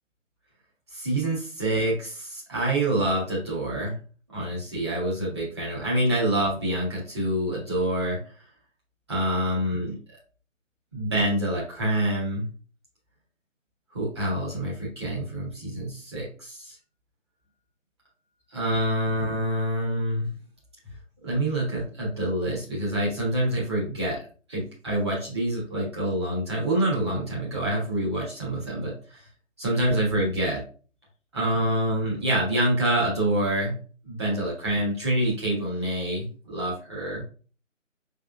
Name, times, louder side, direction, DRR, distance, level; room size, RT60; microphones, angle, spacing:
voice 1, 0.9-3.9 4.3-8.2 9.1-9.9 10.9-12.4 13.9-16.7 18.5-20.3 21.2-24.2 24.5-29.2 29.6-30.6 31.3-33.7 34.0-37.2, right 1 dB, 20° right, -6 dB, 1.4 m, -26 dB
6.0 x 3.6 x 2.3 m, 0.38 s
figure-of-eight pair, 155°, 39 cm